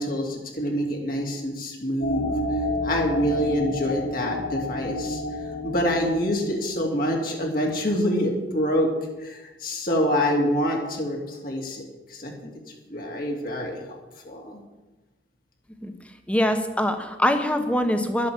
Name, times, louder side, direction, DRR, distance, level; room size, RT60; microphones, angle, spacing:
voice 1, 0.0-5.2 5.6-8.9 9.2-11.8 12.1-12.3 12.9-14.0 14.2-14.6, equal, 55° left, -1 dB, 2.7 m, -26 dB
sound 1, 2.0-6.8, left 1 dB, 85° left, 2.4 m, -30 dB
voice 2, 16.3-18.3, left 1 dB, 5° left, 6 dB, 1.2 m, -23 dB
12.0 x 8.3 x 7.5 m, 1.1 s
head